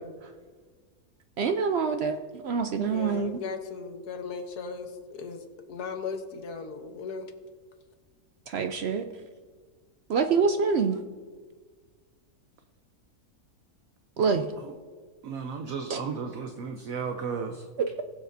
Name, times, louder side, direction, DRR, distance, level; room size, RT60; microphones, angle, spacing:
voice 1, 1.4-2.2 2.4-3.4 8.5-9.1 10.1-11.0 14.2-14.5 15.9-16.0 17.8-18.0, right 5 dB, 80° right, 7 dB, 0.5 m, -26 dB
voice 2, 2.9-7.3, left 5 dB, 75° left, 6 dB, 1.5 m, -37 dB
voice 3, 15.2-17.6, right 5 dB, 65° right, 5 dB, 1.1 m, -34 dB
20.0 x 7.5 x 2.6 m, 1.5 s
omnidirectional pair, 1.7 m